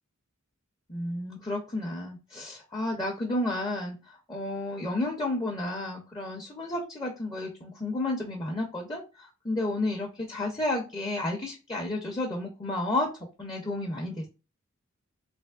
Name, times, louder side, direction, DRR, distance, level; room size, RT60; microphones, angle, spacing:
voice 1, 0.9-4.0 4.3-13.1 13.4-14.3, left 2 dB, 20° left, 0 dB, 0.4 m, -31 dB
3.3 x 2.9 x 2.2 m, 0.31 s
head